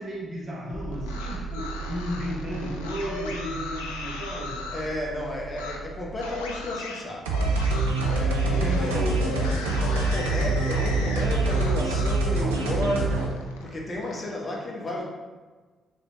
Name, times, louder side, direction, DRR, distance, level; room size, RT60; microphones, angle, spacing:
voice 1, 0.0-4.6 8.4-9.7, equal, 40° right, -5 dB, 1.3 m, -34 dB
sound 1, 0.7-6.7, right 4 dB, 5° left, 0.6 m, -38 dB
sound 2, 0.9-4.9 5.5-5.8 6.2-12.2 12.5-14.3, left 3 dB, 75° left, 0.3 m, -37 dB
voice 2, 4.7-7.3 7.9-13.2 13.6-15.0, left 1 dB, 30° left, -2 dB, 0.8 m, -33 dB
sound 3, 7.2-13.3, right 3 dB, 75° right, 0.4 m, -25 dB
3.1 x 3.1 x 3.8 m, 1.3 s
figure-of-eight pair, 40°, 0 cm